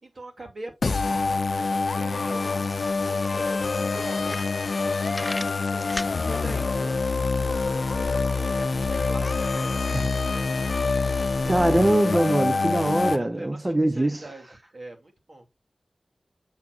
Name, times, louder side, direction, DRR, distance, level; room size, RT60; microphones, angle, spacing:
voice 1, 0.0-5.2 5.7-11.0 12.7-15.5, right 2 dB, 70° right, 2.5 m, -44 dB
sound 1, 0.8-13.2, left 4 dB, 80° left, 0.6 m, -26 dB
sound 2, 2.3-13.1, equal, ahead, 2.9 m, -48 dB
sound 3, 4.2-4.8 5.1-6.2, left 1 dB, 25° left, 0.7 m, -34 dB
voice 2, 11.4-14.3, right 1 dB, 35° right, 0.7 m, -22 dB
7.2 x 6.2 x 2.5 m
cardioid pair, 45°, 0 cm